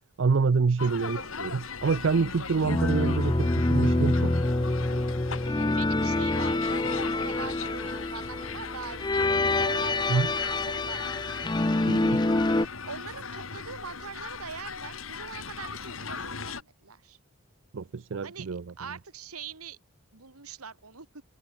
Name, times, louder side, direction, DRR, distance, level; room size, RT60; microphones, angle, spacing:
voice 1, 0.2-4.4 10.1-10.3 11.9-12.2 17.7-18.7, right 4 dB, 55° right, 0.5 m, -27 dB
sound 1, 0.8-16.6, left 5 dB, 65° left, 2.6 m, -39 dB
sound 2, 2.6-12.7, left 2 dB, 20° left, 0.6 m, -26 dB
voice 2, 5.4-11.4 12.9-17.2 18.2-18.5 18.8-19.8 20.1-21.2, right 5 dB, 90° right, 2.3 m, -43 dB
head